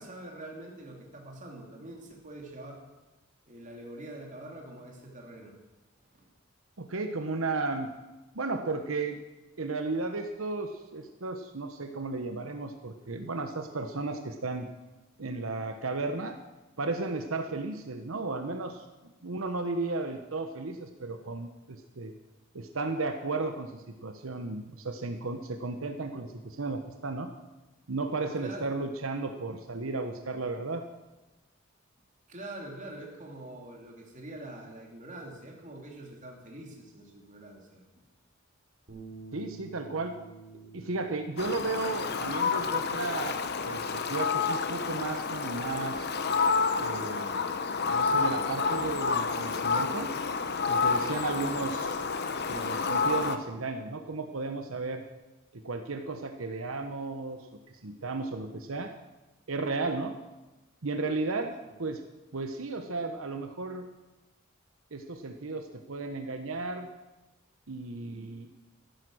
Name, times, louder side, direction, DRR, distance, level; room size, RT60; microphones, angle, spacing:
voice 1, 0.0-2.8 3.5-5.6 6.1-6.3 28.4-28.7 32.3-37.8 61.6-61.8, right 1 dB, 40° right, 0 dB, 2.9 m, -45 dB
voice 2, 6.8-7.9 8.3-9.2 9.6-14.7 15.2-16.4 16.8-18.9 19.2-22.1 22.5-27.3 27.9-30.8 39.3-40.1 40.7-43.4 43.7-46.1 46.8-47.4 47.9-50.1 50.7-51.9 52.5-55.0 55.5-58.9 59.5-60.2 60.8-62.0 62.3-63.8 64.9-66.9 67.7-68.5, right 3 dB, 85° right, 6 dB, 1.0 m, -34 dB
sound 1, 38.9-45.1, right 4 dB, 55° right, 3.5 m, -51 dB
Fowl, 41.4-53.4, left 5 dB, 55° left, 1.0 m, -29 dB
14.5 x 11.5 x 6.3 m, 1.1 s
head